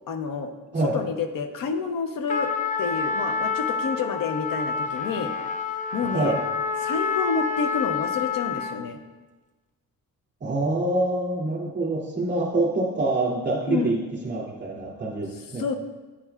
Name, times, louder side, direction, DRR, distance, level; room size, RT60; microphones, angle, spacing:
voice 1, 0.1-0.5 0.8-2.5 2.8-5.3 5.7-6.3 6.8-9.0 13.7-13.9 15.5-15.7, left 5 dB, 80° left, 7 dB, 0.8 m, -29 dB
Trumpet, 2.3-8.9, left 5 dB, 25° left, 0.4 m, -28 dB
voice 2, 10.4-15.7, right 2 dB, 30° right, -4 dB, 2.6 m, -26 dB
9.9 x 8.8 x 2.4 m, 1.2 s
wide cardioid pair, 145°, 33 cm